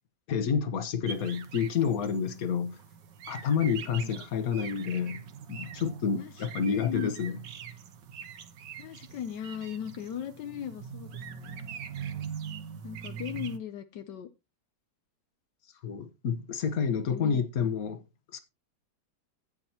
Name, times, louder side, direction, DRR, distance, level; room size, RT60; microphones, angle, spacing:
voice 1, 0.3-2.8 3.3-5.2 5.5-7.4 15.8-18.0 18.3-18.4, left 6 dB, 55° left, 1.5 m, -29 dB
sound 1, 1.1-13.6, right 7 dB, 85° right, 1.7 m, -43 dB
voice 2, 3.8-4.2 6.1-7.1 8.8-11.6 12.8-14.3 16.9-17.4, left 9 dB, 80° left, 1.4 m, -39 dB
12.5 x 9.0 x 2.8 m
omnidirectional pair, 1.9 m